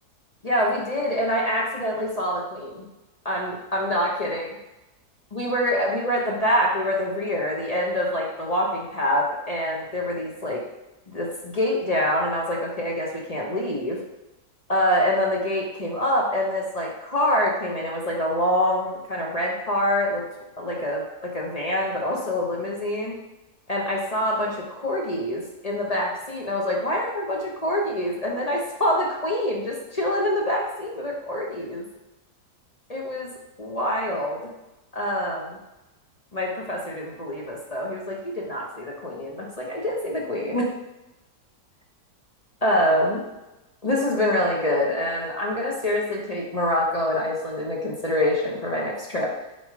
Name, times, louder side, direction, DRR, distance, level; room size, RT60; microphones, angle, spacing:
voice 1, 0.4-2.9 3.2-4.4 5.3-10.6 11.1-14.0 14.7-20.2 20.6-23.1 23.7-31.8 32.9-33.3 33.6-34.4 34.9-35.6 36.3-40.7 42.6-43.2 43.8-49.3, left 1 dB, 25° left, -2 dB, 1.1 m, -25 dB
7.2 x 4.4 x 4.9 m, 1.0 s
omnidirectional pair, 1.7 m